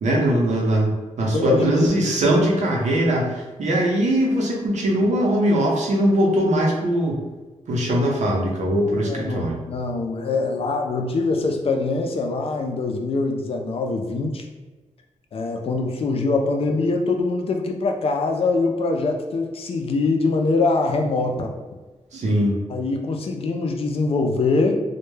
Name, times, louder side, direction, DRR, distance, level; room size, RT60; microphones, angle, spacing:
voice 1, 0.0-7.2 7.7-9.6 22.1-22.6, right 1 dB, 70° right, -2 dB, 0.7 m, -21 dB
voice 2, 1.3-1.9 9.0-14.5 15.3-21.5 22.7-24.8, left 3 dB, 50° left, 3 dB, 0.4 m, -23 dB
2.1 x 2.1 x 3.1 m, 1.2 s
wide cardioid pair, 110°, 12 cm